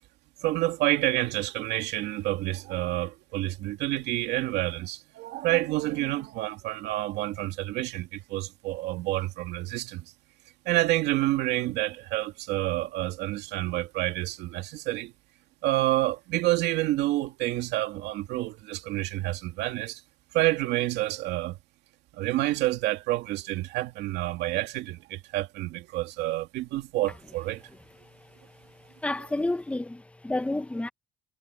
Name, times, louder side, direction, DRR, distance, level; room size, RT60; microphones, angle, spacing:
voice 1, 0.4-10.1 10.7-15.1 15.6-20.0 20.3-21.6 22.1-27.7, right 16 dB, 85° right, 2.5 m, -28 dB
voice 2, 29.0-30.9, left 2 dB, 5° left, 0.8 m, -30 dB
cardioid pair, 110°, 17 cm